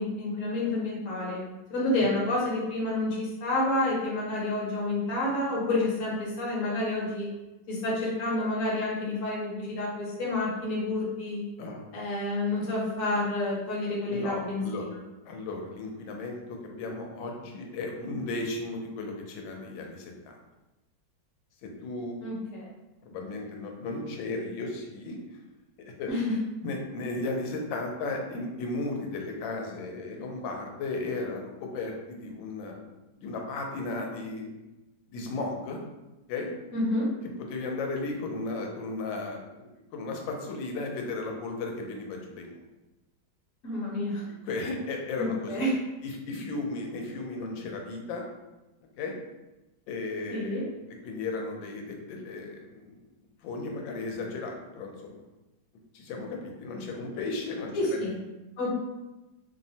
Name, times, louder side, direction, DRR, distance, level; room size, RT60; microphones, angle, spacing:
voice 1, 0.0-7.3 7.7-11.4 11.9-15.0 22.2-22.7 26.1-26.2 36.7-37.1 43.6-44.2 45.2-45.8 50.3-50.6 57.7-58.2 58.6-58.7, left 2 dB, 55° left, -4 dB, 1.0 m, -29 dB
voice 2, 14.1-14.9 15.3-20.1 21.6-22.2 23.0-25.4 25.8-26.1 26.6-32.9 33.2-34.5 35.1-35.8 36.3-36.5 37.2-42.5 44.4-45.6 46.0-48.3 49.0-49.2 49.9-50.7 51.0-53.0 53.4-55.2 55.9-58.0, left 3 dB, 85° left, 1 dB, 1.3 m, -35 dB
3.1 x 2.0 x 2.6 m, 1.0 s
omnidirectional pair, 2.0 m